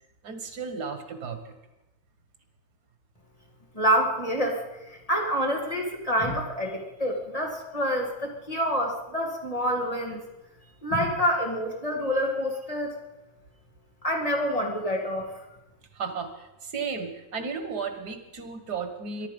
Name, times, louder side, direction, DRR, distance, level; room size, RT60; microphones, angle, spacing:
voice 1, 0.2-1.5 15.9-19.3, right 5 dB, 90° right, 8 dB, 2.0 m, -34 dB
voice 2, 3.7-4.6 4.9-10.2 10.8-13.0 14.0-15.3, equal, 20° left, 0 dB, 2.5 m, -27 dB
23.0 x 11.5 x 5.3 m, 1.0 s
omnidirectional pair, 1.7 m